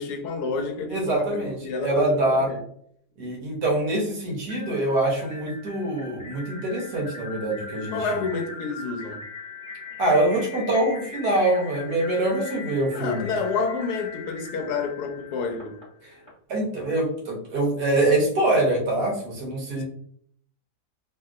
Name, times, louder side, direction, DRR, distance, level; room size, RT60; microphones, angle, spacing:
voice 1, 0.0-2.6 7.9-9.2 12.9-15.8, left 4 dB, 80° left, 1.1 m, -29 dB
voice 2, 0.9-1.6 1.8-2.5 3.2-8.0 10.0-13.3 16.0-16.1 16.5-19.8, right 1 dB, 75° right, 1.5 m, -24 dB
sound 1, 4.4-16.3, left 4 dB, 20° left, 1.3 m, -40 dB
3.1 x 2.7 x 2.4 m
omnidirectional pair, 1.7 m